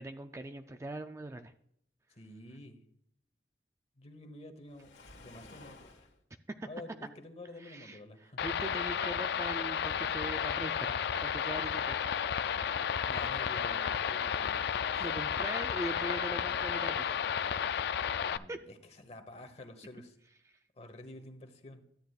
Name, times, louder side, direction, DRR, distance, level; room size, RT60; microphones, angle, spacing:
voice 1, 0.0-1.5 6.5-6.7 7.6-12.0 12.6-13.0 15.0-17.2 18.5-18.6 20.5-20.6, right 1 dB, 15° right, 7 dB, 0.3 m, -42 dB
voice 2, 2.1-2.8 4.0-6.1 6.7-8.4 13.0-15.1 18.2-20.2 20.8-21.8, left 1 dB, 35° left, 7 dB, 1.1 m, -50 dB
Waves surf, 4.7-6.2, left 2 dB, 85° left, 1.5 m, -53 dB
sound 1, 8.4-18.4, left 8 dB, 65° left, 0.3 m, -32 dB
13.0 x 9.2 x 2.4 m, 0.72 s
head